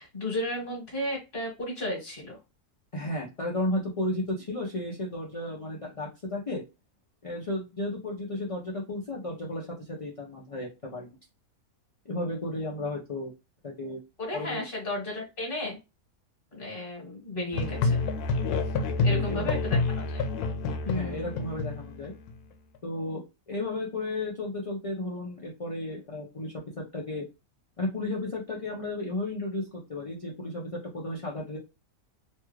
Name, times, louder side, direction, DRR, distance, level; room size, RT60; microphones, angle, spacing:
voice 1, 0.0-2.4 14.2-15.8 16.5-18.0 19.0-20.2 20.8-21.3, left 1 dB, 40° left, -2 dB, 1.3 m, -34 dB
voice 2, 2.9-6.6 7.2-11.2 12.1-13.3 13.6-14.0 14.3-14.6 19.1-19.5 20.9-22.1 22.8-27.2 27.8-31.6, left 1 dB, 55° left, -3 dB, 0.3 m, -33 dB
Musical instrument, 17.5-22.3, left 3 dB, 85° left, 1.1 m, -28 dB
3.1 x 2.4 x 3.0 m, 0.25 s
omnidirectional pair, 1.6 m